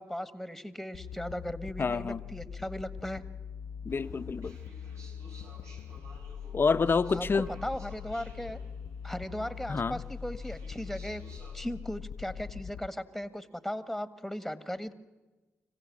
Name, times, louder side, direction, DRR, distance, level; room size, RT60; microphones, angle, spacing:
voice 1, 0.0-3.2 7.1-8.6 9.0-11.2 11.5-14.9, equal, ahead, 1.6 m, -37 dB
sound 1, 0.9-12.9, left 7 dB, 70° left, 0.7 m, -42 dB
voice 2, 1.8-2.2 3.8-4.6 6.5-7.5 9.7-10.0, left 4 dB, 40° left, 0.8 m, -28 dB
sound 2, 3.9-11.7, right 2 dB, 70° right, 4.4 m, -55 dB
25.5 x 15.5 x 8.6 m
supercardioid pair, 50°, 6 cm